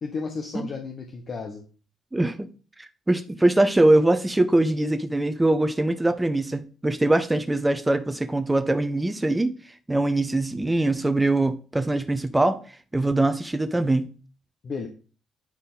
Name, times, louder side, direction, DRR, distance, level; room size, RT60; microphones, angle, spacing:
voice 1, 0.0-1.6 14.6-14.9, left 4 dB, 50° left, 1.1 m, -33 dB
voice 2, 2.1-2.5 2.8-9.6 9.9-14.1, right 2 dB, 15° right, 0.8 m, -22 dB
8.9 x 4.0 x 3.9 m
hypercardioid pair, 40°, 0 cm